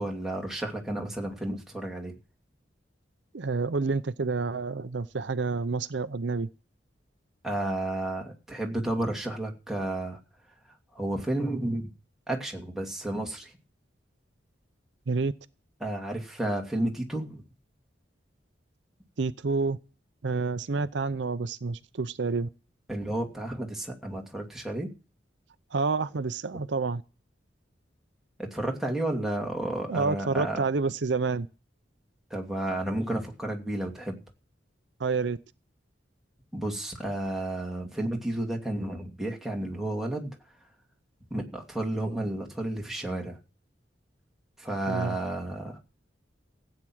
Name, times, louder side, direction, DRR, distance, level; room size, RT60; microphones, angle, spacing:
voice 1, 0.0-2.1 7.4-10.2 10.9-11.9 12.3-13.5 15.8-17.4 22.9-24.9 28.4-30.6 32.3-34.2 36.5-40.4 41.3-43.4 44.6-45.8, right 1 dB, ahead, 2.7 m, -32 dB
voice 2, 3.3-6.5 15.1-15.3 19.2-19.8 20.2-22.5 25.7-27.0 29.9-31.5 35.0-35.4 44.9-45.2, right 4 dB, 75° right, 0.6 m, -28 dB
16.0 x 9.0 x 6.2 m
head